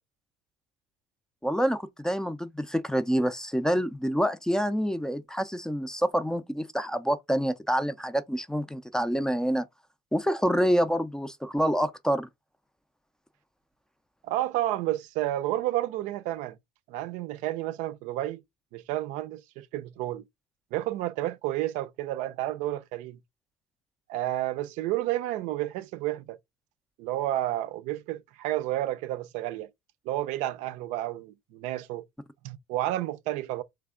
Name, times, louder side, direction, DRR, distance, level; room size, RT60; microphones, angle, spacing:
voice 1, 1.4-9.7 10.1-12.3, equal, 5° left, 0.4 m, -27 dB
voice 2, 14.2-16.6 16.9-18.4 18.7-20.2 20.7-23.2 24.1-26.4 27.0-29.7 30.1-32.0 32.4-33.6, right 15 dB, 70° right, 0.5 m, -31 dB
3.3 x 3.3 x 3.7 m
supercardioid pair, 110°, 13 cm